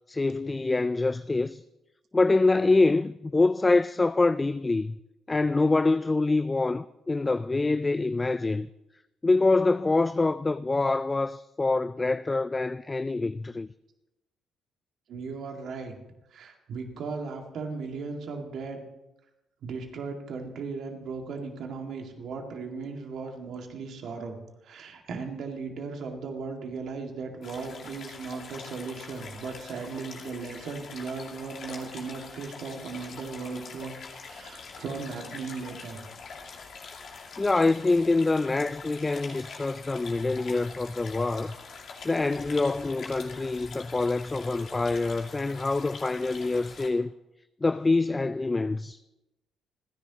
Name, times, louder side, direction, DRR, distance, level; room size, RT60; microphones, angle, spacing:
voice 1, 0.1-1.6 2.1-5.0 5.3-8.7 9.2-13.7 37.4-41.6 42.0-47.1 47.6-49.0, left 3 dB, 25° left, 0.4 m, -25 dB
voice 2, 15.1-16.0 16.3-18.8 19.6-24.4 24.6-36.0, right 4 dB, 65° right, 2.1 m, -37 dB
sound 1, 27.4-46.9, left 4 dB, 60° left, 2.5 m, -44 dB
28.5 x 10.5 x 3.0 m
hypercardioid pair, 50°, 0 cm